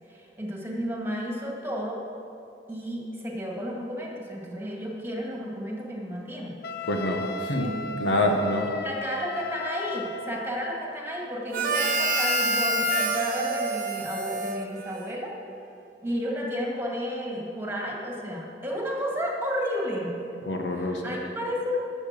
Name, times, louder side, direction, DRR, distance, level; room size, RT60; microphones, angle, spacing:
voice 1, 0.1-2.0 2.7-6.6 7.4-7.7 8.8-15.3 16.0-20.2 20.7-21.8, equal, 15° right, -2 dB, 2.0 m, -32 dB
Wind instrument woodwind instrument, 6.6-10.5, left 2 dB, 60° left, 0.6 m, -36 dB
voice 2, 6.9-7.7 8.0-8.7 20.4-21.0, left 1 dB, 75° left, 2 dB, 1.3 m, -26 dB
Harmonica, 11.5-15.3, right 1 dB, 50° right, 0.9 m, -27 dB
12.0 x 7.0 x 7.5 m, 2.7 s
head